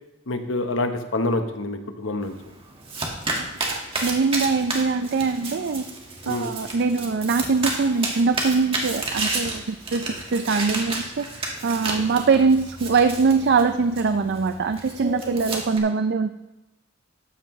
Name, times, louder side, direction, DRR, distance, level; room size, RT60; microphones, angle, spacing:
voice 1, 0.3-2.3 6.2-6.5 11.9-12.0, left 2 dB, 75° left, 7 dB, 1.0 m, -27 dB
Domestic sounds home sounds, 2.2-15.8, right 2 dB, 30° right, 1.8 m, -31 dB
voice 2, 4.0-5.8 6.3-16.3, right 4 dB, 55° right, 9 dB, 0.4 m, -22 dB
13.0 x 9.2 x 3.1 m, 0.96 s
head